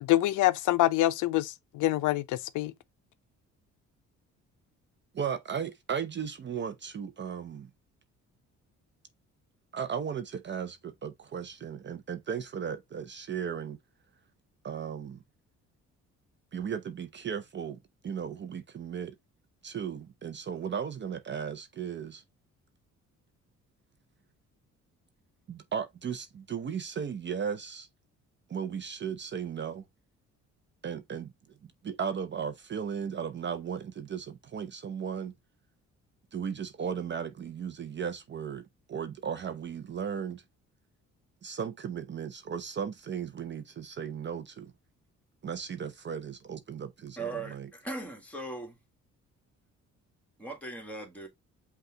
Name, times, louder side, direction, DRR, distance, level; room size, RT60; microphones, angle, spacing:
voice 1, 0.0-2.7, left 15 dB, 80° left, 0.5 m, -26 dB
voice 2, 5.1-7.7 9.7-13.8 14.6-15.2 16.5-19.1 19.6-22.2 25.5-27.9 28.5-29.8 30.8-31.3 31.8-35.3 36.3-38.6 38.9-40.4 41.4-44.7 45.4-47.7, right 7 dB, 40° right, 0.5 m, -36 dB
voice 3, 47.2-48.8 50.4-51.3, right 3 dB, 5° left, 1.7 m, -39 dB
5.4 x 2.4 x 3.7 m
cardioid pair, 90°, 30 cm